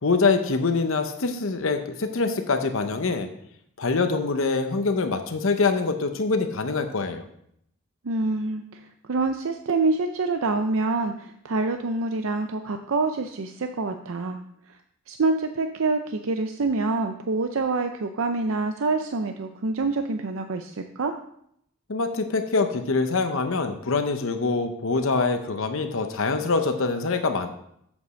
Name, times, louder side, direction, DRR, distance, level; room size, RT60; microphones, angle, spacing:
voice 1, 0.0-3.3 3.8-7.2 21.9-27.5, left 4 dB, 65° left, 7 dB, 0.8 m, -24 dB
voice 2, 8.0-8.8 9.1-14.4 14.7-14.8 15.1-21.1, right 3 dB, 65° right, 6 dB, 0.5 m, -26 dB
8.3 x 5.2 x 6.3 m, 0.71 s
head